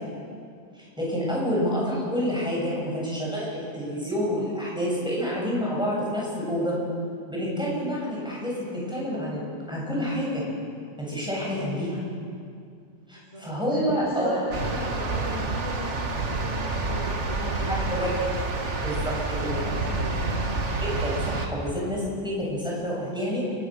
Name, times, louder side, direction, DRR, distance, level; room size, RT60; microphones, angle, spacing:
voice 1, 0.7-6.7 7.3-10.4 11.0-12.0 13.1-14.4 17.7-18.1 18.8-19.7 20.8-23.5, equal, 5° right, -5 dB, 7.8 m, -28 dB
voice 2, 13.1-18.0 18.5-20.3, equal, 20° right, -6 dB, 4.4 m, -37 dB
sound 1, 14.5-21.5, right 3 dB, 55° right, 2.0 m, -28 dB
29.0 x 17.5 x 6.5 m, 2.3 s
omnidirectional pair, 1.5 m